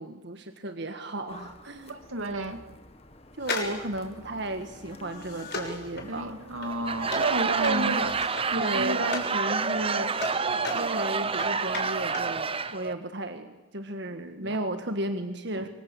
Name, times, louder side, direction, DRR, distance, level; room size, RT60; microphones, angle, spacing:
voice 1, 0.0-2.0 3.4-6.4 7.5-8.0 8.6-10.1 10.7-15.7, right 1 dB, 55° right, 7 dB, 1.7 m, -34 dB
sound 1, 1.3-8.3, left 2 dB, 30° left, 1.8 m, -49 dB
voice 2, 1.9-2.6 6.1-8.1 8.5-9.1 14.4-14.6 15.6-15.7, right 2 dB, 85° right, 7 dB, 2.6 m, -31 dB
sound 2, 3.4-9.4 9.7-12.4 12.6-12.7, left 4 dB, 55° left, 6.7 m, -38 dB
Laughter / Crowd, 6.7-12.9, right 5 dB, 30° right, 0.9 m, -28 dB
27.0 x 24.5 x 8.7 m, 1.1 s
head